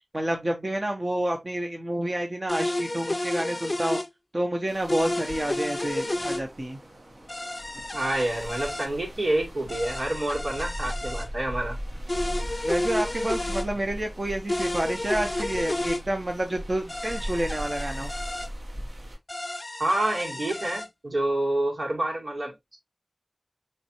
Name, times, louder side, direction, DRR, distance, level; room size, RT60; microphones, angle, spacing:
voice 1, 0.1-4.0 4.3-6.8 12.6-18.1, right 1 dB, 45° right, 0.9 m, -29 dB
sound 1, 2.5-4.1 4.9-6.4 7.3-8.9 9.7-11.3 12.1-13.7 14.5-16.0 16.9-18.5 19.3-20.9, left 1 dB, 40° left, 0.4 m, -31 dB
sound 2, 4.7-19.2, equal, 65° right, 1.3 m, -38 dB
voice 2, 7.9-11.8 19.8-22.8, right 1 dB, 85° right, 2.2 m, -28 dB
5.1 x 3.2 x 2.9 m
wide cardioid pair, 50°, 0 cm